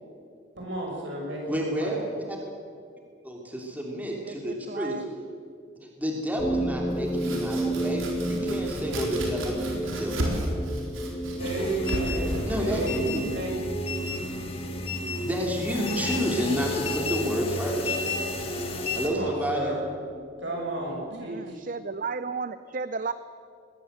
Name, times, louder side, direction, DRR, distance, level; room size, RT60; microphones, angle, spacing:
voice 1, 0.6-2.0 11.4-13.5 19.0-19.8 20.4-21.6, right 2 dB, 65° right, -1 dB, 6.9 m, -33 dB
voice 2, 1.5-2.0 2.3-2.4 3.2-5.0 6.0-10.2 12.4-13.2 15.1-18.0 18.9-19.7, equal, 10° right, -1 dB, 2.9 m, -30 dB
voice 3, 4.2-5.1 21.1-23.1, right 4 dB, 40° right, 12 dB, 0.5 m, -34 dB
sound 1, 6.4-21.3, right 1 dB, 5° left, 1.1 m, -34 dB
Domestic sounds home sounds, 6.9-14.6, right 1 dB, 85° right, 4.2 m, -35 dB
sound 2, 11.4-19.1, left 2 dB, 30° left, 2.1 m, -32 dB
20.5 x 17.0 x 8.0 m, 2.3 s
head